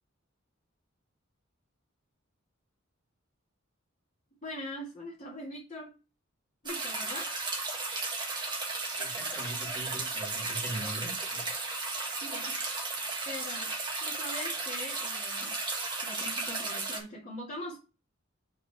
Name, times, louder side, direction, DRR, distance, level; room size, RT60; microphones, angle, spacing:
voice 1, 4.4-5.9 6.6-7.3 12.2-12.6 13.3-13.7 14.0-15.5 16.0-17.8, left 1 dB, 35° left, 2.1 m, -41 dB
sound 1, 6.7-17.0, right 3 dB, 20° right, 1.6 m, -34 dB
voice 2, 9.0-11.5, right 1 dB, 10° left, 2.8 m, -41 dB
5.3 x 4.0 x 6.0 m
head